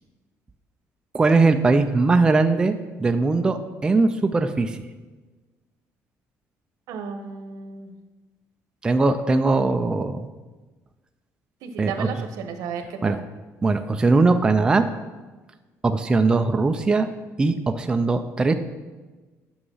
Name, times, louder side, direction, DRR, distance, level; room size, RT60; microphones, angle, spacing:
voice 1, 1.1-4.8 8.8-10.3 11.8-12.3 13.0-13.2 13.6-14.9 15.8-17.1 17.4-18.5, right 3 dB, 15° right, 7 dB, 0.4 m, -20 dB
voice 2, 6.9-7.9 11.6-13.2, right 6 dB, 85° right, 7 dB, 1.1 m, -34 dB
9.8 x 6.3 x 5.5 m, 1.2 s
cardioid pair, 170°, 6 cm